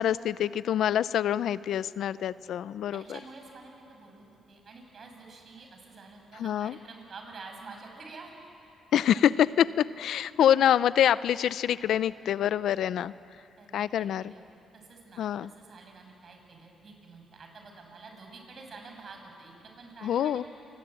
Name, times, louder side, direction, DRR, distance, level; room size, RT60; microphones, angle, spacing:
voice 1, 0.0-3.2 6.4-6.8 8.9-13.1 13.7-14.3 15.2-15.5 20.0-20.4, left 10 dB, 70° left, 17 dB, 0.5 m, -26 dB
voice 2, 2.9-8.3 13.6-14.4 14.7-15.2 15.6-20.5, right 3 dB, 50° right, 3 dB, 6.4 m, -48 dB
29.0 x 20.5 x 8.9 m, 2.8 s
cardioid pair, 90°, 0 cm